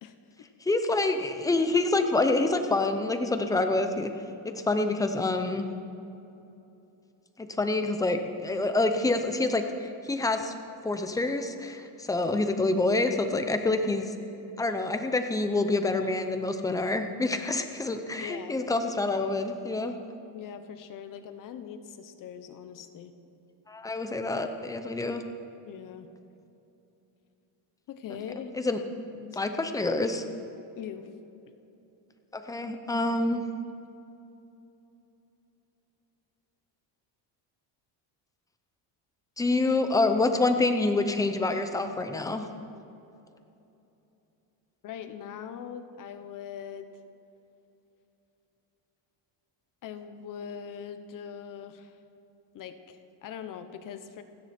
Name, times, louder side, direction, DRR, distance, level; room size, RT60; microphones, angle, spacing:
voice 1, 0.0-0.5 18.2-18.6 20.3-23.1 25.6-26.1 27.9-28.6 29.1-29.4 30.8-31.1 44.8-46.9 49.8-52.0 52.5-54.2, left 8 dB, 40° left, 9 dB, 1.1 m, -41 dB
voice 2, 0.6-4.1 4.4-5.6 7.4-10.5 10.8-14.1 14.6-19.9 23.7-25.2 28.6-28.8 29.3-30.2 32.3-33.4 39.4-42.5, left 2 dB, 5° left, 7 dB, 0.7 m, -27 dB
29.0 x 10.5 x 4.4 m, 2.9 s
cardioid pair, 175°, 48 cm